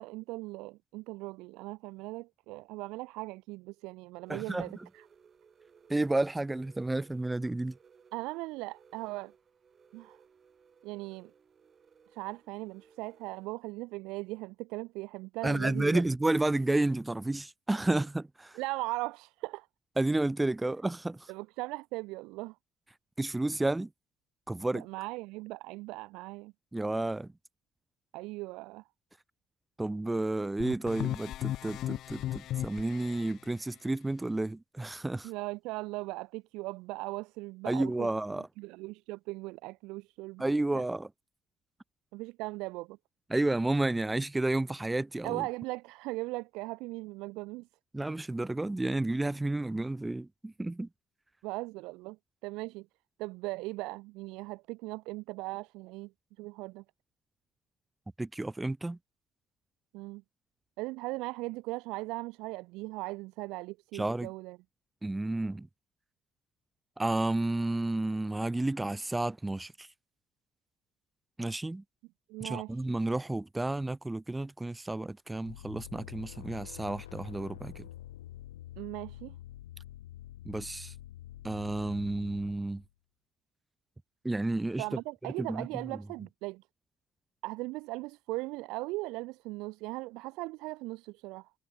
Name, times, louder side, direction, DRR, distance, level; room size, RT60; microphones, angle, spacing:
voice 1, 0.0-5.1 8.1-9.3 9.9-10.2 10.8-11.3 12.1-16.0 18.5-19.7 21.3-22.6 24.7-26.5 28.1-28.8 35.2-38.1 38.4-40.4 40.7-40.8 42.1-43.0 45.2-47.7 51.4-52.2 52.4-52.9 53.2-56.1 56.4-56.8 59.9-60.2 60.8-64.6 72.3-72.7 78.8-79.4 84.8-86.6 87.4-91.5, right 22 dB, 70° right, 0.3 m, -39 dB
sound 1, 4.2-13.5, right 6 dB, 45° right, 5.4 m, -62 dB
voice 2, 4.3-4.7 5.9-7.7 15.4-18.5 20.0-21.2 23.2-23.9 24.5-24.9 26.7-27.3 29.8-35.3 37.6-38.5 40.4-41.1 43.3-45.5 47.9-50.9 58.2-59.0 63.9-64.3 65.0-65.7 67.0-69.9 71.4-71.8 72.4-77.9 80.4-80.9 81.4-82.8 84.2-84.8 85.4-85.7, right 2 dB, 15° right, 1.1 m, -31 dB
sound 2, 30.6-33.3, left 13 dB, 65° left, 0.9 m, -35 dB
sound 3, 75.4-82.9, left 13 dB, 80° left, 2.0 m, -47 dB
figure-of-eight pair, 45°, 0 cm